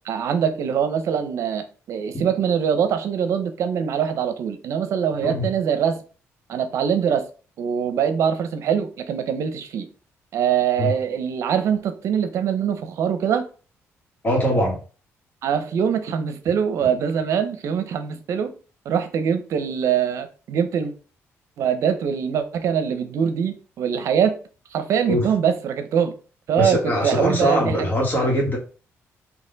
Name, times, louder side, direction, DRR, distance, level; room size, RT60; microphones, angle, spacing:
voice 1, 0.1-6.0 6.5-7.3 7.6-9.9 10.3-13.4 15.4-18.5 18.9-20.9 21.6-24.3 24.7-26.1 26.5-27.9 28.2-28.3, right 8 dB, 70° right, 0.7 m, -23 dB
voice 2, 14.2-14.8 25.1-25.3 26.6-28.6, equal, 35° left, 1.7 m, -22 dB
4.1 x 2.9 x 3.9 m
cardioid pair, 115°, 5 cm